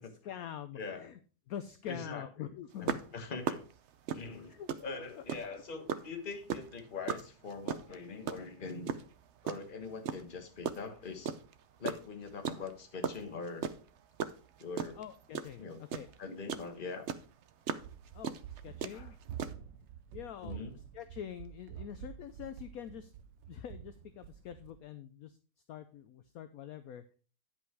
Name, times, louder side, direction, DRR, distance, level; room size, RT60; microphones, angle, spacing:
voice 1, 0.2-1.2 1.5-3.0 4.5-5.2 5.5-5.6 14.9-16.1 18.1-19.2 20.1-23.1 23.5-25.4 25.7-27.0, left 9 dB, 65° left, 11 dB, 0.9 m, -45 dB
voice 2, 0.8-1.1 1.9-2.2 2.8-2.9 3.1-3.6 4.1-8.9 9.4-11.3 11.8-13.7 14.6-15.0 15.6-15.8 16.2-17.0 18.9-19.1 20.4-20.8, left 4 dB, 30° left, 7 dB, 1.2 m, -42 dB
sound 1, 2.9-5.6 5.9-9.7 10.0-11.6 11.9-16.7 17.0-19.5, right 7 dB, 65° right, 0.6 m, -37 dB
Run, 17.7-24.8, right 9 dB, 85° right, 1.3 m, -48 dB
10.0 x 5.5 x 4.7 m, 0.37 s
omnidirectional pair, 1.9 m